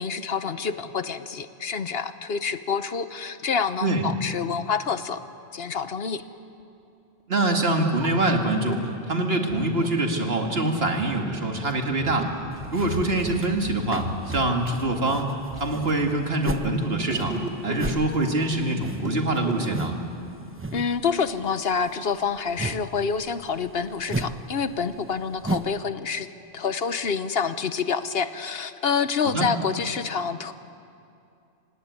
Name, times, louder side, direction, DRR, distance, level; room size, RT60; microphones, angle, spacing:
voice 1, 0.0-5.2 5.5-6.2 20.7-26.3 26.5-30.5, left 6 dB, 65° left, 11 dB, 1.1 m, -27 dB
sound 1, 6.6-6.7 7.4-7.5 7.8-8.8 9.4-20.3, right 2 dB, 90° right, 2.4 m, -36 dB
voice 2, 7.3-12.3 12.7-17.4 17.6-19.9 29.3-29.5, right 2 dB, 65° right, 3 dB, 2.4 m, -24 dB
sound 2, 12.5-16.7 17.0-20.1 20.3-21.0 21.3-25.8, right 2 dB, 15° right, 0.8 m, -34 dB
26.5 x 17.5 x 9.6 m, 2.6 s
omnidirectional pair, 1.1 m